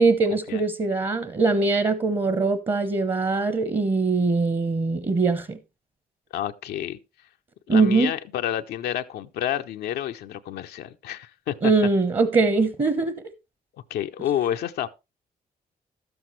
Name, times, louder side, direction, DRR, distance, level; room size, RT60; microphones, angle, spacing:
voice 1, 0.0-5.6 7.7-8.1 11.6-13.1, right 3 dB, 35° right, 1.0 m, -22 dB
voice 2, 6.3-7.0 7.7-11.7 13.9-14.9, left 11 dB, 85° left, 0.5 m, -29 dB
11.5 x 7.9 x 3.1 m
cardioid pair, 65°, 16 cm